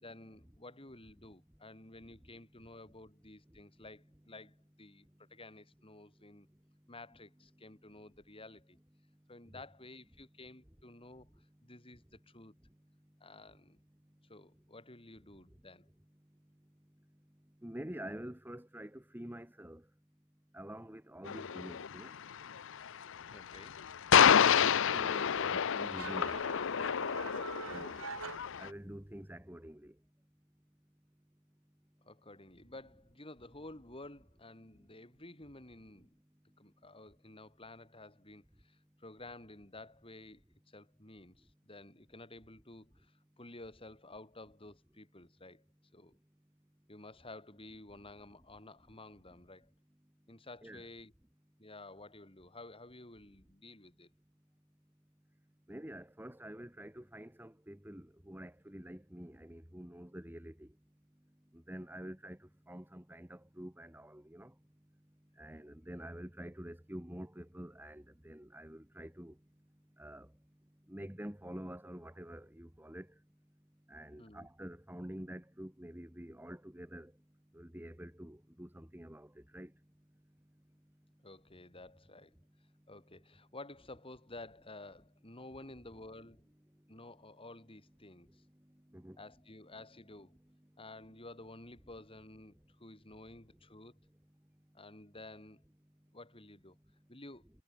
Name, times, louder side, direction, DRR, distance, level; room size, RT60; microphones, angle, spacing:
voice 1, 0.0-6.5 6.9-8.8 9.3-11.3 11.6-12.5 13.2-13.8 14.3-15.9 23.3-23.8 32.0-36.1 36.6-40.4 40.7-45.6 45.9-46.2 46.9-49.7 50.3-51.1 51.6-54.1 74.2-74.5 81.2-82.3 82.9-86.5 86.9-88.4 89.2-90.4 90.8-94.0 94.7-95.6 96.1-96.7 97.1-97.4, left 2 dB, 25° left, 5.1 m, -52 dB
voice 2, 17.6-19.8 20.5-22.1 24.3-26.4 27.7-28.0 28.6-29.9 50.6-50.8 55.7-60.7 61.7-64.5 65.4-69.3 70.0-70.3 70.9-73.1 73.9-77.1 77.5-79.7 88.9-89.2, equal, 10° right, 1.7 m, -47 dB
sound 1, 21.3-28.7, left 8 dB, 65° left, 0.6 m, -29 dB
sound 2, 24.9-29.2, right 4 dB, 80° right, 7.7 m, -46 dB
head